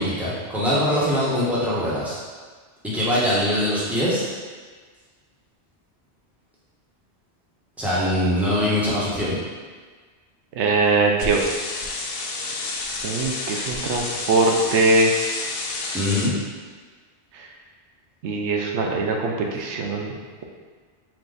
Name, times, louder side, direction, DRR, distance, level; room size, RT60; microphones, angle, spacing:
voice 1, 0.0-2.2 2.8-4.3 7.8-9.4 15.9-16.3, left 1 dB, ahead, -9 dB, 1.1 m, -22 dB
voice 2, 10.6-11.4 13.0-15.1 18.2-20.4, right 3 dB, 90° right, 1 dB, 0.9 m, -22 dB
sound 1, 11.2-16.3, left 3 dB, 65° left, 0.7 m, -30 dB
4.8 x 2.5 x 3.9 m, 1.5 s
omnidirectional pair, 1.1 m